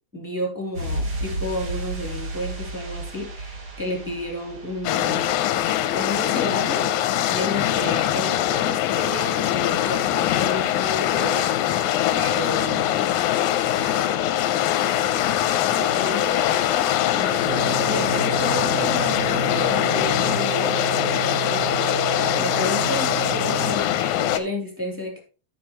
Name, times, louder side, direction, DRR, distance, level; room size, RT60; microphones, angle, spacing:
voice 1, 0.1-5.3 5.9-6.9 7.3-11.7 12.1-12.9 13.4-14.4 15.7-20.8 21.5-25.2, left 1 dB, 5° right, -2 dB, 2.6 m, -32 dB
sound 1, 0.7-7.3 7.5-7.6, right 1 dB, 40° right, 2.0 m, -34 dB
sound 2, 4.8-24.4, left 12 dB, 90° left, 2.1 m, -22 dB
sound 3, 17.5-23.7, right 7 dB, 75° right, 0.8 m, -31 dB
13.0 x 6.0 x 3.0 m, 0.37 s
omnidirectional pair, 3.4 m